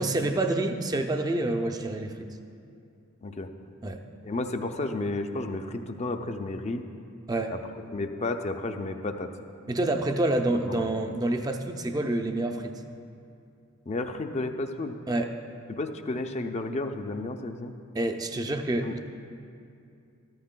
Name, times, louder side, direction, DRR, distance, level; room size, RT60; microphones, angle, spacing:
voice 1, 0.0-2.2 3.8-4.0 7.3-7.6 9.7-12.7 15.1-15.3 17.9-19.0, right 2 dB, 20° right, 5 dB, 0.5 m, -27 dB
voice 2, 4.2-6.8 7.5-9.3 10.6-10.9 13.9-15.0 15.7-17.7 18.8-19.0, left 2 dB, 30° left, 6 dB, 0.5 m, -32 dB
14.0 x 13.5 x 2.2 m, 2.5 s
head